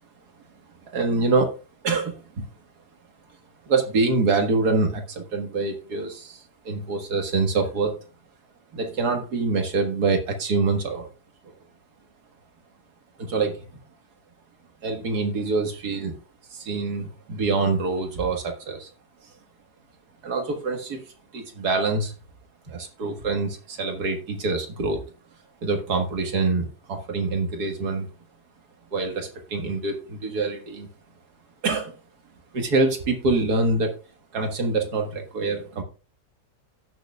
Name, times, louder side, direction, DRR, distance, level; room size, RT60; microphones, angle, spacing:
voice 1, 0.9-1.6 1.8-2.5 3.7-8.0 8.7-11.1 13.2-13.6 14.8-16.2 16.5-18.9 20.2-21.0 21.3-22.1 22.7-25.0 25.6-28.1 28.9-30.9 31.6-32.0 32.5-33.9 34.3-35.8, right 3 dB, 80° right, 4 dB, 2.1 m, -25 dB
16.0 x 6.5 x 2.3 m, 0.34 s
omnidirectional pair, 1.7 m